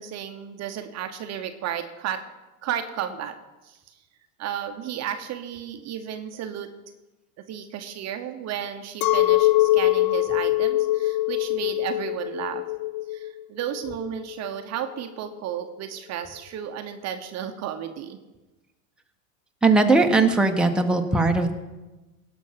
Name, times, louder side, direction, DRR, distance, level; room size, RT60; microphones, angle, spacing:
voice 1, 0.0-2.2 2.6-3.4 3.6-4.0 4.4-6.7 7.5-12.6 13.1-18.2, right 9 dB, 35° right, 8 dB, 1.0 m, -33 dB
Chink clink, 9.0-14.5, left 16 dB, 60° left, 0.7 m, -23 dB
voice 2, 19.6-21.5, right 3 dB, ahead, 2 dB, 1.2 m, -19 dB
17.5 x 6.2 x 5.8 m, 1.1 s
hypercardioid pair, 95°, 44 cm